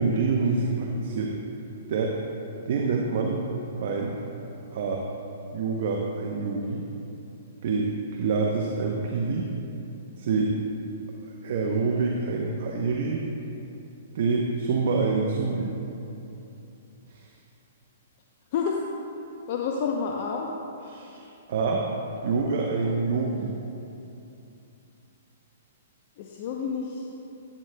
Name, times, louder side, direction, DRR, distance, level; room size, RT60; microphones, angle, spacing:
voice 1, 0.0-1.3 1.9-2.2 2.7-3.4 3.8-4.2 4.7-5.0 5.5-6.8 7.6-9.5 10.2-10.5 11.4-13.2 14.1-15.7 20.9-21.8 22.2-23.6, right 4 dB, 60° right, -1 dB, 0.7 m, -26 dB
voice 2, 19.5-20.5 26.2-27.1, left 6 dB, 50° left, 0 dB, 0.6 m, -29 dB
11.0 x 9.3 x 2.2 m, 2.8 s
hypercardioid pair, 135°, 0 cm